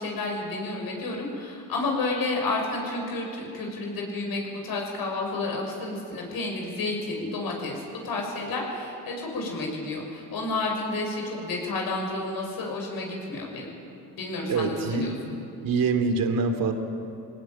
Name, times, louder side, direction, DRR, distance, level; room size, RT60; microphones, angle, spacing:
voice 1, 0.0-13.7 14.2-15.1, left 2 dB, 60° left, 1 dB, 6.4 m, -31 dB
voice 2, 14.5-15.2 15.6-16.7, right 4 dB, 55° right, 6 dB, 2.9 m, -25 dB
22.5 x 18.5 x 9.0 m, 2.9 s
supercardioid pair, 80°, 39 cm